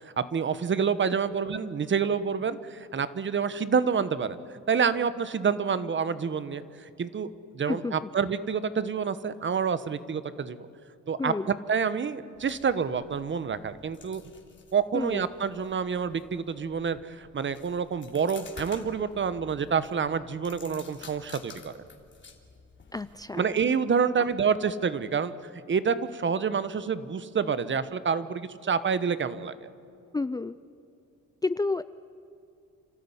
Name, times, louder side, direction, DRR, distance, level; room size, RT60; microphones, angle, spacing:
voice 1, 0.0-4.4 4.7-10.6 11.1-14.2 14.7-21.8 23.3-25.3 25.7-29.7, right 6 dB, 40° right, 14 dB, 1.2 m, -28 dB
voice 2, 7.7-8.1 11.2-11.5 14.9-15.3 22.9-23.5 30.1-30.6 31.4-31.8, left 3 dB, 15° left, 14 dB, 0.4 m, -30 dB
sound 1, 12.3-23.4, left 4 dB, 40° left, 3.1 m, -51 dB
29.5 x 13.5 x 9.9 m, 2.7 s
cardioid pair, 90°, 30 cm